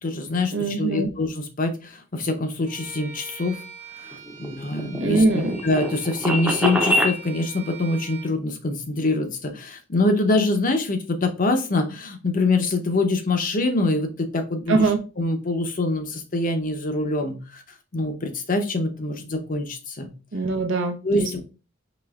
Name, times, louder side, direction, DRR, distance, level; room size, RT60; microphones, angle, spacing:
voice 1, 0.0-3.6 4.0-5.2 5.6-14.9 15.2-17.6 17.9-20.1 21.0-21.4, left 2 dB, 45° left, 6 dB, 0.7 m, -24 dB
voice 2, 0.5-1.1 5.0-5.6 14.7-15.0 20.3-21.3, right 3 dB, 70° right, 5 dB, 0.7 m, -22 dB
Bowed string instrument, 2.7-8.4, right 6 dB, 35° right, 1.0 m, -43 dB
sound 1, 4.1-7.2, equal, 5° right, 0.6 m, -25 dB
5.0 x 3.2 x 2.4 m, 0.33 s
head